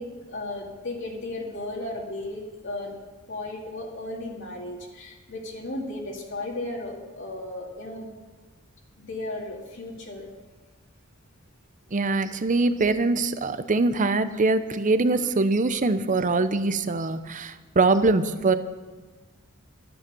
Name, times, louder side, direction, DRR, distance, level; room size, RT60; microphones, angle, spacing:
voice 1, 0.0-3.0 3.3-8.1 9.0-10.3, left 2 dB, 60° left, -1 dB, 2.3 m, -35 dB
voice 2, 11.9-18.6, right 3 dB, 40° right, 12 dB, 0.7 m, -23 dB
12.5 x 8.8 x 6.9 m, 1.3 s
head